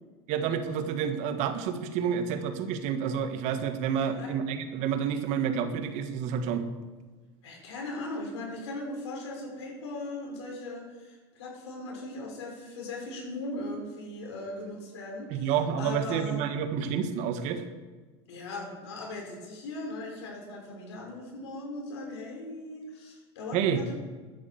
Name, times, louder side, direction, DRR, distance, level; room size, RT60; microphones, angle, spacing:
voice 1, 0.3-6.6 15.3-17.6 23.5-23.8, right 7 dB, 55° right, 9 dB, 1.5 m, -29 dB
voice 2, 4.0-4.3 7.4-16.4 18.3-23.9, left 2 dB, 75° left, 0 dB, 5.6 m, -39 dB
12.0 x 9.6 x 7.1 m, 1.3 s
hypercardioid pair, 95°, 14 cm